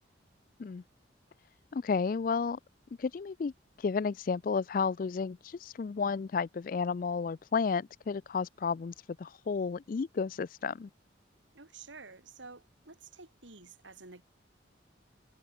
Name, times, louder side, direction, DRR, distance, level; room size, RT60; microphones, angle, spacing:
voice 1, 1.7-2.6 3.0-3.5 3.8-10.9, left 5 dB, 45° left, 0.3 m, -32 dB
voice 2, 11.5-14.2, right 4 dB, 80° right, 2.8 m, -50 dB
head